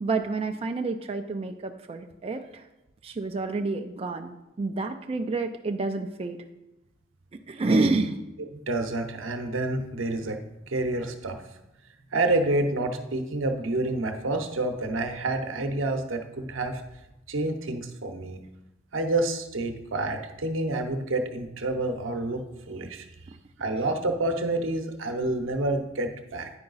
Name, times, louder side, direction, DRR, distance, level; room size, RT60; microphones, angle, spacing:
voice 1, 0.0-2.6 3.0-6.4 7.5-8.2, right 3 dB, 30° right, 5 dB, 0.4 m, -28 dB
voice 2, 8.5-11.4 12.1-16.8 17.3-18.4 18.9-23.1 23.6-26.5, right 2 dB, 85° right, 6 dB, 0.8 m, -28 dB
9.7 x 4.7 x 3.9 m, 0.94 s
head